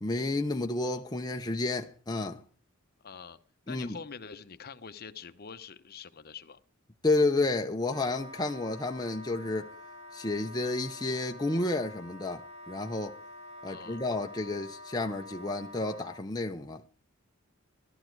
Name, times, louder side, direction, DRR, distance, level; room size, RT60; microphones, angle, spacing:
voice 1, 0.0-2.4 3.7-4.0 7.0-9.7 10.1-13.2 13.6-16.8, left 2 dB, 20° left, 0.7 m, -31 dB
voice 2, 3.0-3.4 3.7-6.6 13.7-14.0, left 6 dB, 50° left, 0.9 m, -45 dB
Wind instrument woodwind instrument, 7.9-16.2, left 1 dB, 30° right, 1.9 m, -47 dB
14.0 x 12.0 x 4.6 m
head